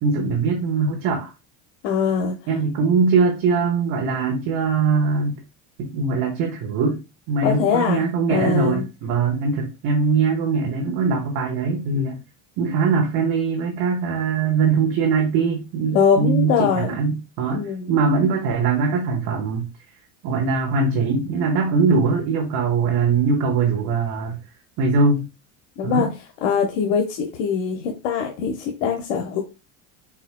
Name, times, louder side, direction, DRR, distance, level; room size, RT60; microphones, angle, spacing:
voice 1, 0.0-1.3 2.5-5.4 5.8-7.0 7.3-12.2 12.6-19.7 20.2-24.4 24.8-25.3 25.8-26.1, right 4 dB, 60° right, 1 dB, 1.2 m, -21 dB
voice 2, 1.8-2.3 7.4-8.0 8.3-8.9 15.9-16.9 17.5-18.0 25.8-26.1 26.4-29.4, left 6 dB, 85° left, 2 dB, 1.0 m, -22 dB
4.8 x 4.2 x 2.2 m, 0.28 s
supercardioid pair, 115°, 40 cm